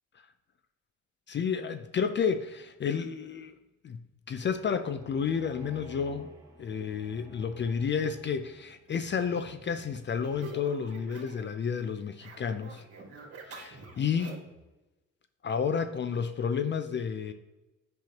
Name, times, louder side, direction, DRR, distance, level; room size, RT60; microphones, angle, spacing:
voice 1, 1.3-3.6 3.8-6.3 6.6-12.8 13.5-14.4 15.4-17.3, left 6 dB, 40° left, 9 dB, 0.4 m, -31 dB
sound 1, 4.3-8.9, right 1 dB, 10° right, 2.2 m, -53 dB
sound 2, 8.8-11.5 11.8-14.6, right 3 dB, 50° right, 2.1 m, -48 dB
7.5 x 5.5 x 2.9 m, 1.1 s
cardioid pair, 90°, 30 cm